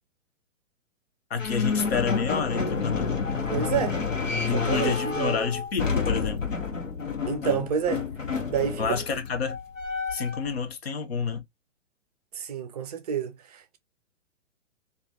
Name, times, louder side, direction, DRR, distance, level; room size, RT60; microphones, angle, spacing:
voice 1, 1.3-3.1 4.5-6.4 7.4-7.6 8.8-9.6 10.1-11.4, left 6 dB, 55° left, 0.7 m, -29 dB
sound 1, 1.4-10.5, left 5 dB, 85° left, 0.9 m, -29 dB
voice 2, 3.5-4.0 4.4-5.4 7.2-8.0 8.5-8.8 12.3-13.8, right 8 dB, 35° right, 0.5 m, -29 dB
2.4 x 2.3 x 2.4 m
figure-of-eight pair, 115°, 38 cm